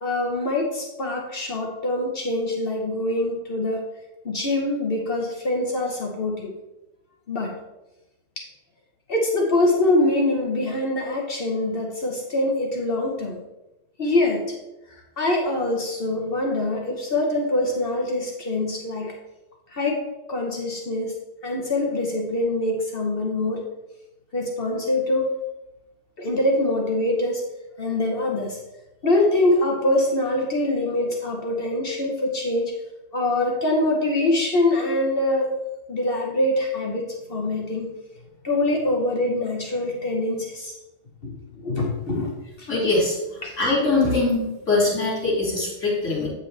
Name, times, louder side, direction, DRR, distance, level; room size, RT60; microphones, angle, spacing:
voice 1, 0.0-3.8 4.2-6.5 7.3-7.5 9.1-13.4 14.0-14.6 15.2-19.1 19.7-20.0 20.3-21.1 21.4-23.6 24.3-25.2 26.2-27.4 27.8-28.6 29.0-32.7 33.1-35.5 35.9-37.9 38.4-40.7 41.2-42.7 43.4-43.5, left 2 dB, 50° left, 0 dB, 1.2 m, -24 dB
voice 2, 42.7-43.2 43.6-46.3, left 3 dB, 80° left, -7 dB, 3.2 m, -22 dB
8.9 x 5.2 x 3.3 m, 0.99 s
omnidirectional pair, 1.3 m